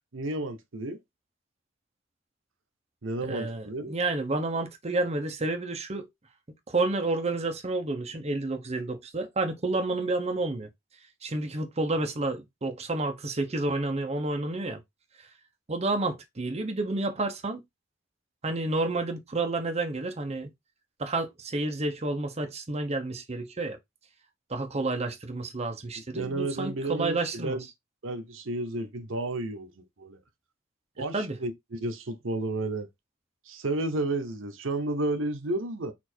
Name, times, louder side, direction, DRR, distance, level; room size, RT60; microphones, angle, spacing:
voice 1, 0.1-1.0 3.0-4.0 26.2-27.6 28.0-29.7 30.0-30.2 31.0-32.9 33.5-35.9, right 2 dB, 75° right, 0.8 m, -32 dB
voice 2, 3.3-6.1 6.7-10.7 11.2-14.8 15.7-17.6 18.4-20.5 21.0-23.8 24.5-27.6 31.1-31.4, right 2 dB, 35° right, 0.8 m, -30 dB
4.3 x 2.7 x 4.3 m
head